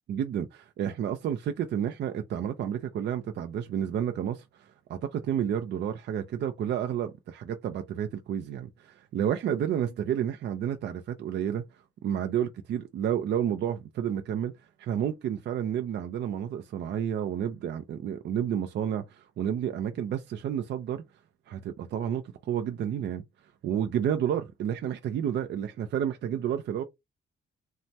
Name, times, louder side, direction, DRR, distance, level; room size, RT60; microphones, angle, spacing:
voice 1, 0.1-11.6 12.0-14.5 14.8-21.0 21.5-23.2 23.6-26.8, right 9 dB, 60° right, 0.5 m, -30 dB
3.1 x 2.1 x 2.7 m
cardioid pair, 90°, 20 cm